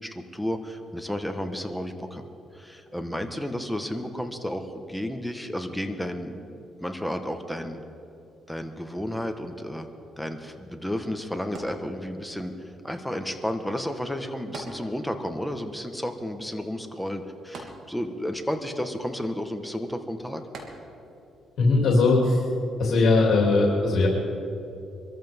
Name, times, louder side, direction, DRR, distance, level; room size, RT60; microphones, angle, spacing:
voice 1, 0.0-2.2 2.5-7.8 8.5-9.9 10.2-12.5 12.8-20.4, equal, ahead, 6 dB, 1.4 m, -32 dB
sound 1, 11.5-12.4 14.5-15.4 15.7-15.8 17.5-18.4 20.5-21.3 21.9-22.0, right 3 dB, 75° right, 2.9 m, -42 dB
voice 2, 21.6-22.4 22.8-24.1, left 3 dB, 70° left, -2 dB, 3.1 m, -20 dB
25.0 x 14.0 x 3.7 m, 2.8 s
cardioid pair, 90°, 0 cm